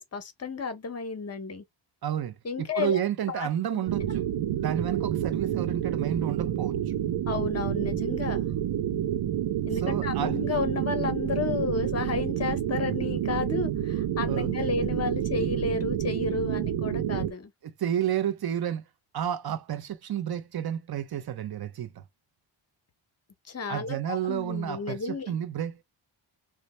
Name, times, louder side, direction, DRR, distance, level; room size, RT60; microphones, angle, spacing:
voice 1, 0.0-1.6 2.4-3.0 3.3-4.0 7.3-8.5 9.7-17.5 23.5-25.4, left 5 dB, 35° left, 0.7 m, -32 dB
voice 2, 2.0-6.8 9.8-10.4 14.3-14.7 17.6-18.8 19.1-22.0 23.7-25.8, right 10 dB, 55° right, 0.6 m, -31 dB
sound 1, 3.9-17.3, right 10 dB, 90° right, 0.6 m, -29 dB
3.2 x 2.1 x 4.1 m
wide cardioid pair, 160°, 47 cm